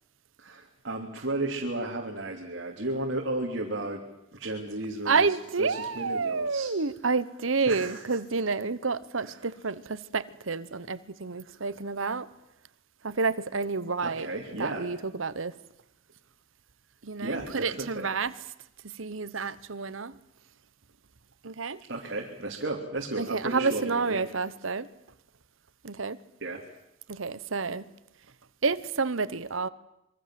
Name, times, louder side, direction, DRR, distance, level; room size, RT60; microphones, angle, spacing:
voice 1, 0.4-4.1 4.3-6.7 7.7-8.2 9.2-9.5 11.4-11.6 14.0-14.9 17.2-18.1 19.3-19.5 21.9-24.3 26.4-26.6, right 2 dB, 60° right, 3.2 m, -34 dB
voice 2, 5.0-12.3 13.0-14.3 14.6-15.5 17.0-18.3 18.8-20.2 21.4-21.8 23.2-24.9 25.8-26.2 27.1-27.9 28.6-29.7, right 4 dB, 80° right, 1.1 m, -29 dB
26.5 x 23.0 x 7.8 m
head